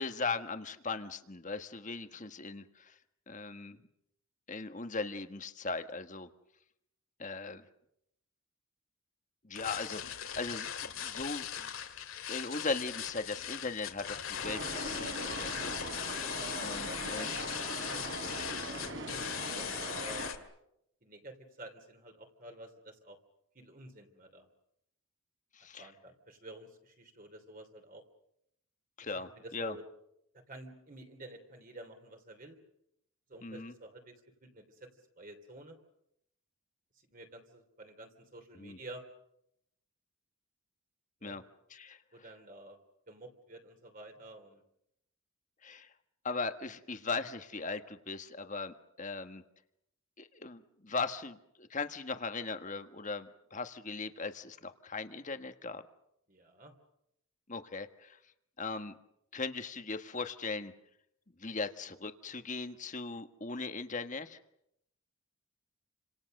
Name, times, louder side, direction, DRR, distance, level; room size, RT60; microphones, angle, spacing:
voice 1, 0.0-2.9 3.3-3.8 4.5-6.3 7.2-7.6 9.4-11.7 12.3-15.1 15.4-15.7 16.6-17.3 25.5-25.9 29.0-29.7 33.4-33.7 38.6-38.8 41.2-41.4 41.7-42.0 45.6-45.9 46.2-49.4 50.2-55.8 57.5-58.2 58.6-58.9 59.3-60.7 61.4-64.4, left 4 dB, 35° left, 9 dB, 1.4 m, -38 dB
sound 1, 9.5-20.3, left 9 dB, 70° left, 2.4 m, -39 dB
sound 2, 14.4-20.3, right 2 dB, 55° right, 3.9 m, -40 dB
voice 2, 16.4-20.3 21.0-23.2 23.5-24.5 25.8-28.0 29.1-29.8 30.3-32.6 33.3-34.9 35.2-35.8 37.1-39.1 41.2-41.4 42.1-42.8 43.1-44.6 56.3-56.7, right 1 dB, 40° right, 4 dB, 3.2 m, -50 dB
29.5 x 26.0 x 6.6 m, 0.80 s
head